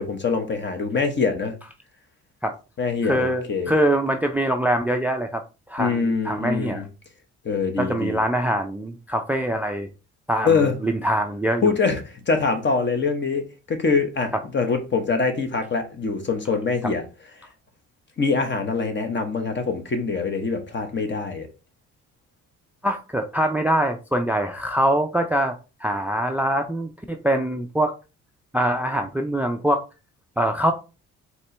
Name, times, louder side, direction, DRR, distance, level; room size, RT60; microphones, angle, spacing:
voice 1, 0.0-1.5 2.8-3.7 5.8-6.9 7.4-8.2 10.4-10.8 11.6-17.0 18.2-21.5, left 4 dB, 40° left, 1.1 m, -24 dB
voice 2, 3.0-5.4 5.7-6.8 7.8-9.9 10.3-11.7 14.3-14.4 22.8-27.9 28.5-29.8 30.4-30.7, right 1 dB, 5° right, 0.4 m, -23 dB
4.3 x 3.0 x 3.3 m
cardioid pair, 90°, 30 cm